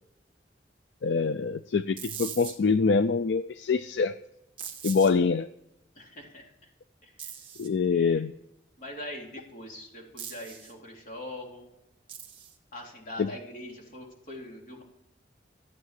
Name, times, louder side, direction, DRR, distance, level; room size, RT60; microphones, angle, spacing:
voice 1, 1.0-4.2 4.8-5.5 7.6-8.3 13.2-13.3, left 5 dB, 75° left, 13 dB, 0.4 m, -25 dB
sound 1, 2.0-2.6 4.6-5.1 7.2-7.7 10.2-10.7 12.1-12.6, right 8 dB, 30° right, 1.9 m, -40 dB
voice 2, 6.0-6.5 7.0-7.3 7.8-8.2 8.8-11.7 12.7-14.8, left 1 dB, 45° left, -1 dB, 3.6 m, -42 dB
14.5 x 9.0 x 7.5 m, 0.83 s
head